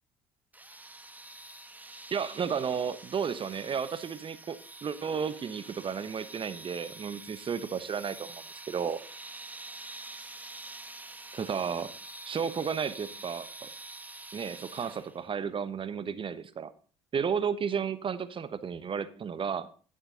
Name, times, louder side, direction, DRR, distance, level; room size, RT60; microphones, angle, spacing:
sound 1, 0.5-15.3, right 2 dB, 10° right, 1.3 m, -46 dB
voice 1, 2.1-9.0 11.3-11.9 12.2-13.7 14.3-16.7 17.1-19.7, right 7 dB, 40° right, 14 dB, 1.1 m, -33 dB
12.5 x 7.8 x 3.8 m, 0.39 s
hypercardioid pair, 65°, 13 cm